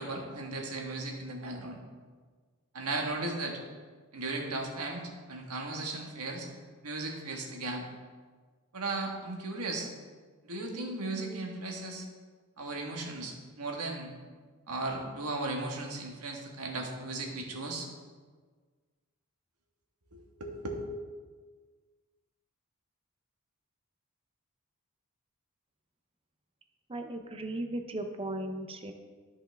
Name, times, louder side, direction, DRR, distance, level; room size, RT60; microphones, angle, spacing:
voice 1, 0.0-1.8 2.7-3.6 4.1-6.5 6.8-7.8 8.7-9.9 10.4-12.1 12.6-14.1 14.7-17.9 20.1-20.8, right 2 dB, 85° right, 1 dB, 1.5 m, -36 dB
voice 2, 26.9-28.9, right 1 dB, 25° right, 6 dB, 0.6 m, -36 dB
13.0 x 5.6 x 3.4 m, 1.5 s
head